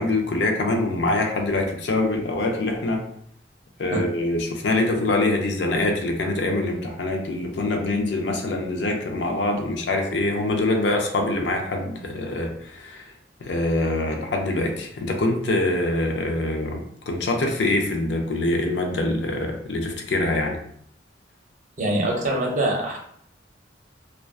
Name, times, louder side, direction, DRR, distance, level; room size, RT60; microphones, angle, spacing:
voice 1, 0.0-3.0 3.8-13.0 13.4-20.6, left 2 dB, 70° left, 3 dB, 0.5 m, -24 dB
voice 2, 21.8-23.0, right 1 dB, 45° right, 0 dB, 0.6 m, -24 dB
2.5 x 2.2 x 2.3 m, 0.67 s
head